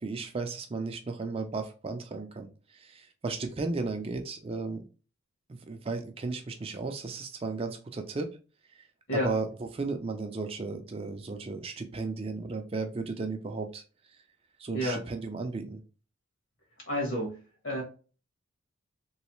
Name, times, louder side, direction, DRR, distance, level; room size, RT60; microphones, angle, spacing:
voice 1, 0.0-4.8 5.5-8.4 8.7-8.9 9.1-13.8 14.1-14.2 14.6-15.8, right 3 dB, 25° right, 5 dB, 0.4 m, -35 dB
voice 2, 16.9-17.4 17.6-17.8, equal, 60° left, 1 dB, 1.4 m, -29 dB
3.1 x 3.1 x 3.0 m, 0.35 s
head